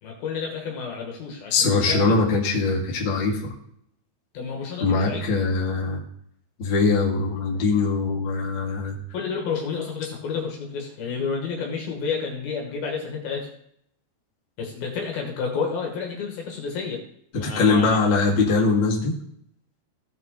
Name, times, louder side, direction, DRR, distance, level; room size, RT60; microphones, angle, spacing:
voice 1, 0.0-2.0 4.3-5.2 9.1-13.5 14.6-17.0 17.3-18.0, left 5 dB, 65° left, 0 dB, 3.0 m, -30 dB
voice 2, 1.5-3.5 4.8-6.0 6.6-9.0 17.3-19.1, left 4 dB, 40° left, -4 dB, 1.8 m, -22 dB
16.5 x 5.8 x 3.8 m, 0.70 s
omnidirectional pair, 5.3 m